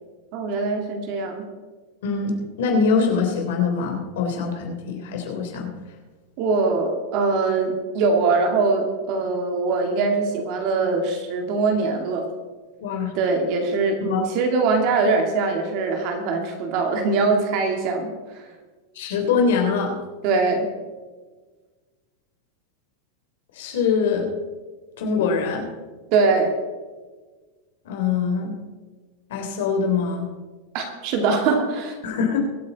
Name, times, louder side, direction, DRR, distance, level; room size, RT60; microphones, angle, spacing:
voice 1, 0.3-1.4 6.4-12.3 13.1-14.0 14.3-18.1 20.2-20.7 26.1-26.5 30.7-32.0, right 4 dB, 40° right, 3 dB, 2.2 m, -22 dB
voice 2, 2.0-2.3 2.6-5.7 12.8-13.1 14.0-14.2 19.0-20.0 23.6-24.3 25.0-25.7 27.9-28.6 29.3-30.3 32.0-32.4, left 5 dB, 70° left, 3 dB, 3.4 m, -23 dB
23.0 x 8.8 x 4.1 m, 1.3 s
supercardioid pair, 175°, 0 cm